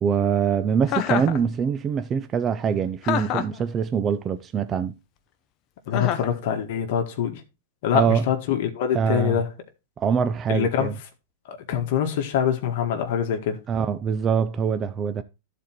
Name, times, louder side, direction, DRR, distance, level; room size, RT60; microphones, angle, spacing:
voice 1, 0.0-5.0 7.9-8.2 8.9-9.4 10.0-10.9 13.7-15.2, right 7 dB, 25° right, 0.7 m, -24 dB
Chuckle chortle, 0.9-1.4 3.0-3.6 5.9-6.3, left 10 dB, 40° left, 1.0 m, -26 dB
voice 2, 5.9-7.4 7.8-9.5 10.5-10.9 11.5-13.6, left 8 dB, 60° left, 1.7 m, -24 dB
13.0 x 4.5 x 4.5 m
hypercardioid pair, 130°, 0 cm